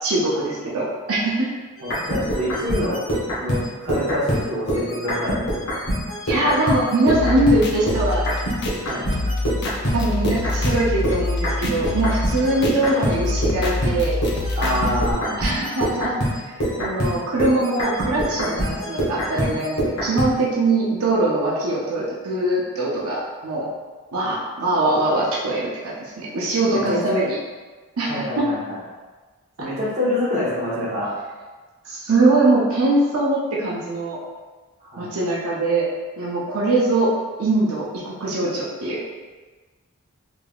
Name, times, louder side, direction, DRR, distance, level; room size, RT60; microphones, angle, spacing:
voice 1, 0.0-1.5 6.3-8.3 9.9-14.1 15.4-23.6 24.1-27.4 28.0-28.1 28.4-28.5 29.6-29.7 31.8-34.2 35.0-35.8 36.2-37.1 37.4-39.0, right 2 dB, 80° right, -5 dB, 0.6 m, -22 dB
sound 1, 1.8-7.6 7.9-20.3, equal, 70° left, 1.1 m, -25 dB
voice 2, 1.8-3.0 3.4-5.4 8.8-9.1 12.5-12.6 14.5-15.4 26.7-27.2 28.0-28.8 29.6-31.1 34.8-35.1, left 1 dB, 35° right, -8 dB, 1.0 m, -26 dB
sound 2, 7.1-15.1, left 2 dB, 50° left, 0.4 m, -26 dB
3.4 x 3.4 x 2.3 m, 1.3 s
head